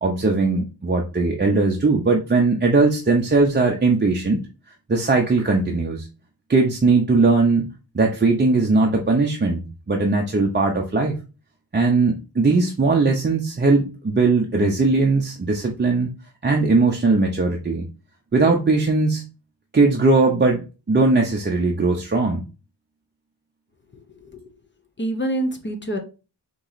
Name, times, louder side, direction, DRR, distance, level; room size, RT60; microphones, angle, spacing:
voice 1, 0.0-4.4 4.9-6.1 6.5-7.7 7.9-9.6 9.9-11.2 11.7-16.1 16.4-17.8 18.3-19.3 19.7-20.6 20.9-22.4, right 3 dB, 25° right, 0 dB, 0.6 m, -19 dB
voice 2, 24.1-24.5 25.0-26.0, right 1 dB, 25° left, 5 dB, 0.8 m, -27 dB
4.2 x 3.0 x 3.9 m, 0.32 s
wide cardioid pair, 105°, 43 cm